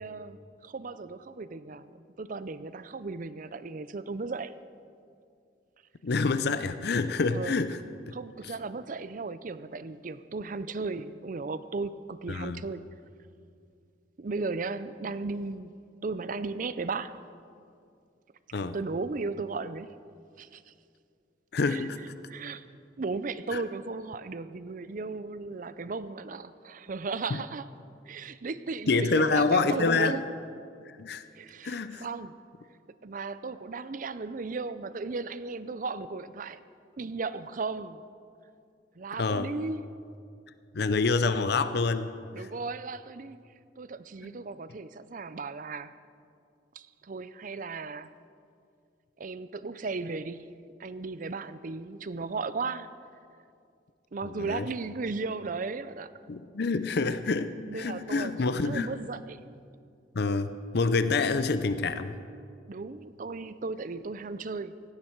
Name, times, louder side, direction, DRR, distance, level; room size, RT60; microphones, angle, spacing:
voice 1, 0.0-4.6 7.3-7.6 8.1-12.8 14.2-15.7 16.0-17.2 18.7-20.0 20.4-20.7 21.7-21.9 22.3-22.6 23.0-27.7 28.1-30.2 31.4-32.4 33.0-36.6 37.0-38.0 39.0-39.9 42.3-43.4 43.8-46.0 46.7-48.1 49.2-52.9 54.1-56.1 57.7-59.4 62.7-64.8, right 3 dB, 45° right, 0.5 m, -36 dB
voice 2, 6.0-7.8 8.1-8.2 8.4-8.5 12.3-12.6 18.5-18.8 21.5-22.0 23.5-23.6 27.3-27.4 28.9-30.2 30.9-31.2 31.6-32.1 39.2-39.5 40.7-42.1 42.4-42.5 44.2-44.4 54.2-54.7 56.3-58.9 60.1-62.1, left 4 dB, 60° left, 0.6 m, -27 dB
17.5 x 15.5 x 4.6 m
head